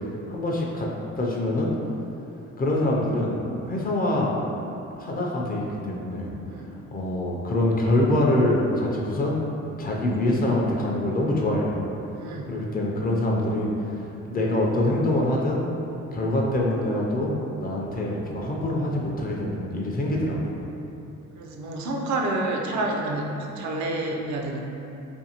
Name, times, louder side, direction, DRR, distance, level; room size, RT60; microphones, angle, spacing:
voice 1, 0.3-0.9 1.2-1.7 2.6-3.4 3.7-4.4 5.0-6.3 6.9-9.4 9.8-11.7 12.4-15.7 16.1-20.4, left 1 dB, 30° left, -2 dB, 0.4 m, -25 dB
voice 2, 12.2-12.6 18.2-18.3 21.4-24.6, right 2 dB, 70° right, 1 dB, 0.4 m, -29 dB
2.6 x 2.5 x 2.8 m, 2.9 s
cardioid pair, 90°, 30 cm